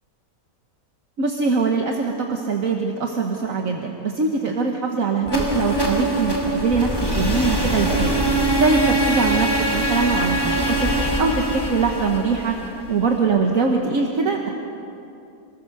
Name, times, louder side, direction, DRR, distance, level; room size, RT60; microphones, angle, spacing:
voice 1, 1.2-8.2 8.5-10.9 11.2-12.6 12.9-14.5, right 4 dB, 60° right, 2 dB, 1.8 m, -22 dB
sound 1, 5.2-13.2, right 1 dB, 15° left, 2.9 m, -23 dB
27.0 x 20.0 x 6.8 m, 2.8 s
omnidirectional pair, 1.6 m